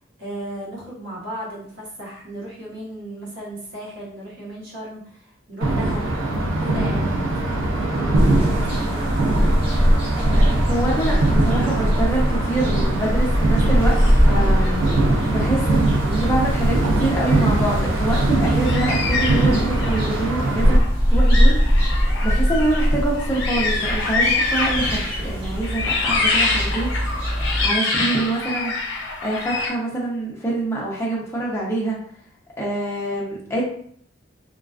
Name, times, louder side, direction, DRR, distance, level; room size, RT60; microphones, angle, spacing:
voice 1, 0.2-6.1 6.6-10.0, right 1 dB, 70° right, -6 dB, 1.0 m, -36 dB
sound 1, 5.6-20.8, right 2 dB, 85° right, 0.4 m, -22 dB
sound 2, 8.1-27.7, equal, 30° right, 0.9 m, -22 dB
voice 2, 10.6-14.9 15.3-20.8 21.1-21.6 22.2-26.9 27.6-28.7 29.2-32.0 32.6-33.6, right 2 dB, 15° left, -4 dB, 0.6 m, -25 dB
sound 3, 13.9-14.2 14.5-14.7 15.6-15.7 18.6-20.1 20.8-20.9 21.2-25.3 25.6-29.7, left 3 dB, 65° left, 0.4 m, -25 dB
2.3 x 2.3 x 2.3 m, 0.62 s
head